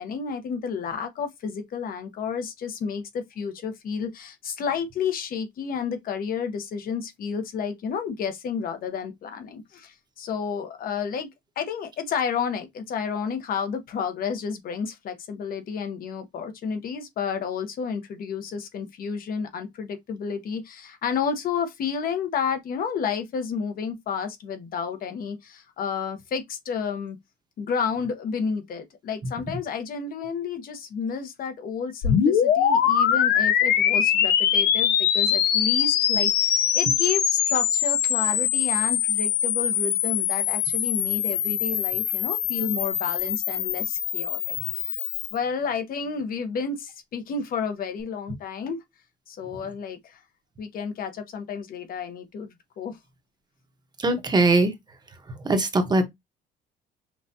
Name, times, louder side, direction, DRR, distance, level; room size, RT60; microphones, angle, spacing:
voice 1, 0.0-11.3 11.6-27.2 27.6-44.4 44.8-45.0 45.3-48.8 49.3-50.2 50.6-52.5 52.8-53.0, left 6 dB, 60° left, 1.2 m, -31 dB
sound 1, 32.0-45.3, left 9 dB, 75° left, 0.8 m, -23 dB
voice 2, 54.0-54.7 55.4-56.0, right 2 dB, 25° right, 1.1 m, -20 dB
5.8 x 2.6 x 2.8 m
cardioid pair, 110°, 17 cm